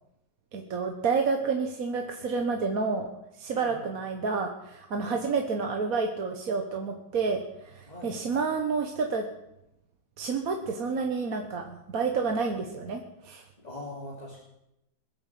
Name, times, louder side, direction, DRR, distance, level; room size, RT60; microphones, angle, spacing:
voice 1, 0.5-3.1 3.4-9.2 10.2-13.4, right 4 dB, 50° right, 3 dB, 1.5 m, -29 dB
voice 2, 3.5-3.9 4.9-5.3 7.9-8.2 13.6-14.4, left 1 dB, 20° left, -3 dB, 2.9 m, -42 dB
20.5 x 8.9 x 7.5 m, 0.86 s
omnidirectional pair, 2.2 m